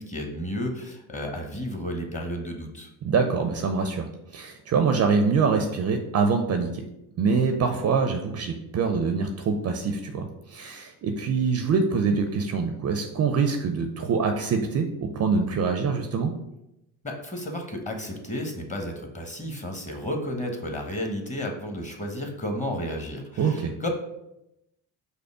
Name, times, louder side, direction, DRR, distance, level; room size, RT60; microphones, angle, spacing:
voice 1, 0.0-2.9 17.0-23.9, left 1 dB, 15° left, 3 dB, 1.0 m, -32 dB
voice 2, 3.0-6.8 7.2-16.3 23.4-23.7, right 5 dB, 35° right, 4 dB, 0.5 m, -25 dB
5.3 x 2.1 x 4.9 m, 0.87 s
hypercardioid pair, 55°, 45 cm